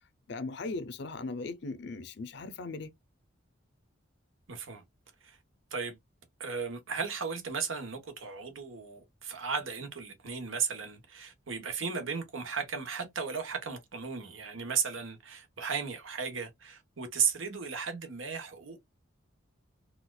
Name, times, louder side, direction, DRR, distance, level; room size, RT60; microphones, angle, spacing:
voice 1, 0.3-2.9, left 3 dB, 60° left, 0.5 m, -38 dB
voice 2, 4.5-4.8 5.2-5.4 5.7-6.0 6.4-18.8, right 6 dB, 80° right, 1.0 m, -35 dB
4.2 x 2.3 x 2.2 m
head